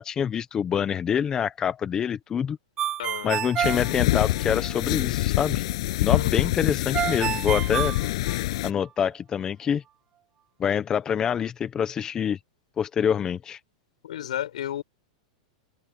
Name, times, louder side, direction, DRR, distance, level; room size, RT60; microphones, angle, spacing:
voice 1, 0.0-2.6 3.2-5.7 6.0-7.9 8.6-9.8 10.6-12.4 12.8-13.6, left 8 dB, 20° left, 0.9 m, -26 dB
Ringtone, 2.8-4.7 6.9-8.8, right 10 dB, 25° right, 4.9 m, -29 dB
voice 2, 3.0-3.4 6.1-6.5 14.0-14.8, left 11 dB, 80° left, 6.6 m, -33 dB
sound 1, 3.6-8.7, left 18 dB, 55° left, 6.8 m, -25 dB
open air
supercardioid pair, 150°, 4 cm